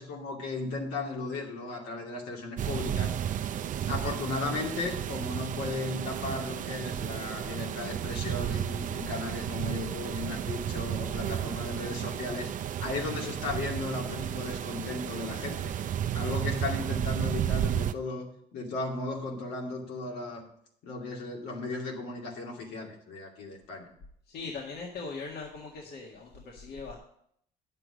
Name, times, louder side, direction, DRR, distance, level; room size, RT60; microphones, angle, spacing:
voice 1, 0.0-3.2 3.9-12.5 12.8-15.7 16.1-20.5 20.8-23.9, left 3 dB, 85° left, -1 dB, 2.6 m, -36 dB
sound 1, 2.6-17.9, right 10 dB, 50° right, 0.6 m, -33 dB
voice 2, 24.3-27.0, left 4 dB, 70° left, -2 dB, 1.9 m, -40 dB
9.9 x 7.5 x 5.2 m, 0.67 s
cardioid pair, 110°, 17 cm